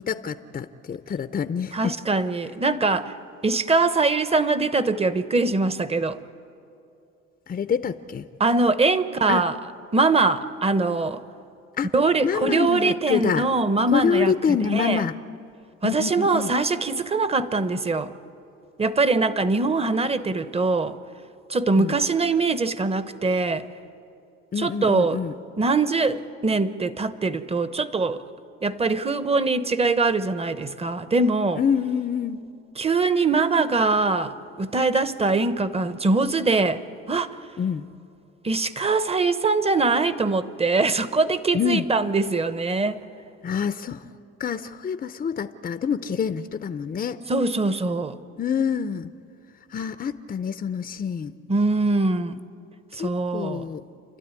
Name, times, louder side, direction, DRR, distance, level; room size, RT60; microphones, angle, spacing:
voice 1, 0.0-2.0 7.5-8.3 9.3-9.4 11.8-11.9 12.2-13.5 13.9-15.2 15.8-16.5 21.8-22.0 24.5-25.3 31.6-32.5 37.6-37.9 41.5-41.9 43.4-44.1 44.4-47.2 48.4-49.1 49.7-51.3 52.9-53.8, left 7 dB, 30° left, 0.7 m, -26 dB
voice 2, 1.7-3.1 3.4-6.2 8.4-9.6 9.9-11.2 11.9-14.3 14.6-15.0 15.8-18.1 18.8-21.0 21.5-23.6 24.6-25.2 25.6-28.2 28.6-31.6 32.8-36.8 37.1-37.4 38.4-43.0 47.3-48.2 51.5-52.4 52.9-53.6, right 3 dB, 20° right, 1.0 m, -22 dB
29.5 x 12.5 x 9.7 m
supercardioid pair, 85°, 29 cm